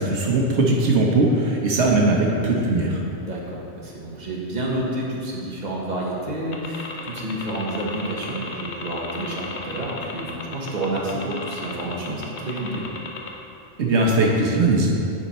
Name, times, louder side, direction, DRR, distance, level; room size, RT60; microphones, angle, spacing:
voice 1, 0.0-3.0 13.8-14.9, right 2 dB, 85° right, -2 dB, 1.3 m, -19 dB
voice 2, 3.2-12.9, right 1 dB, 40° right, -4 dB, 1.4 m, -29 dB
sound 1, 6.5-13.3, left 4 dB, 80° left, 1.2 m, -34 dB
10.0 x 5.7 x 4.3 m, 2.7 s
omnidirectional pair, 1.1 m